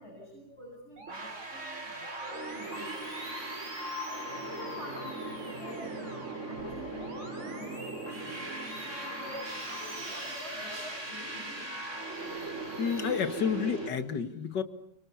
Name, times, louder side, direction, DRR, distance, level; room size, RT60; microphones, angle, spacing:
voice 1, 0.0-3.0 4.3-6.1 6.4-8.0 8.8-11.7, left 1 dB, 35° left, -3 dB, 8.5 m, -46 dB
Musical instrument, 1.0-11.4 11.8-13.4, right 2 dB, 70° right, 5.8 m, -50 dB
sound 1, 1.1-13.9, right 2 dB, 45° right, 4.2 m, -39 dB
voice 2, 12.8-14.6, left 7 dB, 80° left, 10 dB, 2.4 m, -30 dB
29.5 x 25.5 x 7.2 m, 0.70 s
omnidirectional pair, 1.8 m